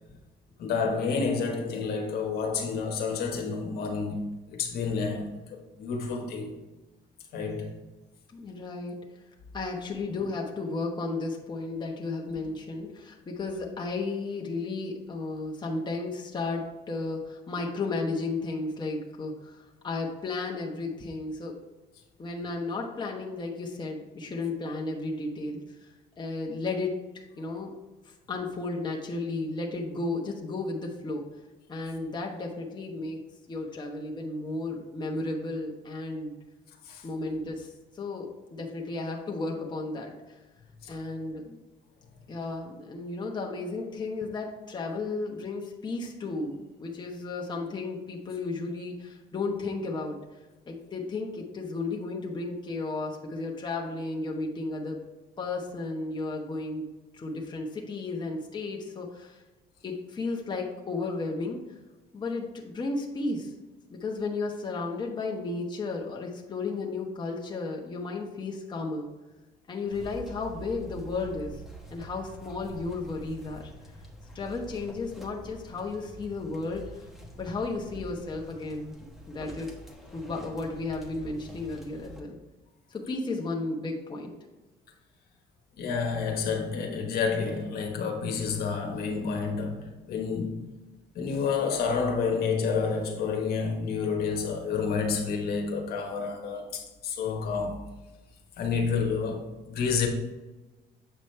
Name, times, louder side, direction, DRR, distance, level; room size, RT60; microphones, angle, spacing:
voice 1, 0.6-6.5 7.3-7.7 36.8-37.0 40.8-40.9 85.8-90.6 91.1-97.8 98.6-100.1, left 5 dB, 65° left, 1.4 m, -29 dB
voice 2, 8.3-9.0 9.5-21.6 22.2-25.9 26.2-27.7 28.0-31.3 31.7-36.3 37.0-40.4 40.9-41.6 42.3-50.2 50.7-55.0 55.4-56.9 57.1-59.4 59.8-61.6 62.1-63.6 63.9-69.1 69.7-71.6 71.9-73.7 74.3-77.1 77.4-79.0 79.3-79.7 80.1-82.4 82.9-84.3, left 3 dB, 25° left, 1.1 m, -34 dB
sound 1, 69.9-82.2, right 1 dB, ahead, 1.2 m, -46 dB
7.9 x 5.1 x 3.3 m
cardioid pair, 110°, 17 cm